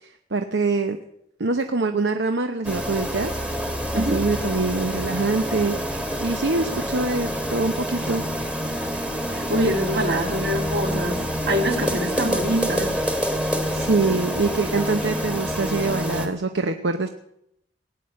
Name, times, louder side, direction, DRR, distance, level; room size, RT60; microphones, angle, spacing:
voice 1, 0.0-1.0 1.4-3.3 3.9-5.8 6.2-8.2 13.7-17.1, right 3 dB, 75° right, 7 dB, 0.8 m, -24 dB
sound 1, 2.6-16.3, equal, 5° right, 1.3 m, -27 dB
voice 2, 9.3-12.9, right 1 dB, 55° right, 3 dB, 2.6 m, -24 dB
18.0 x 9.5 x 7.6 m, 0.77 s
head